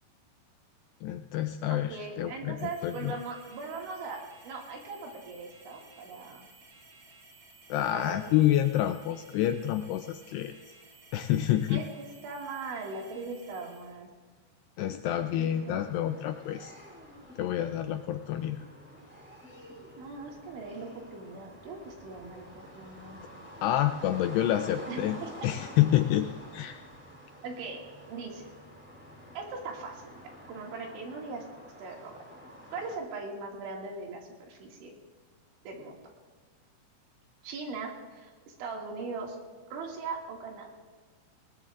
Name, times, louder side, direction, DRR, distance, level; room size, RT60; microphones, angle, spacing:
voice 1, 1.0-3.1 7.7-10.5 11.1-11.8 14.8-16.7 17.4-18.7 23.6-25.2 25.4-26.8, left 12 dB, 85° left, 8 dB, 2.4 m, -28 dB
voice 2, 1.7-6.5 7.9-8.6 11.7-14.1 15.3-15.8 20.0-23.2 24.9-25.3 27.4-27.8 28.1-28.5 29.4-31.5 31.8-32.1 32.7-34.9 35.7-36.0 37.4-39.4 39.7-40.7, right 4 dB, 85° right, 0 dB, 4.5 m, -40 dB
sound 1, 2.6-14.0, right 3 dB, 35° right, 2.1 m, -56 dB
sound 2, 15.2-33.0, equal, 5° right, 2.6 m, -49 dB
20.0 x 19.0 x 2.5 m, 1.5 s
omnidirectional pair, 5.3 m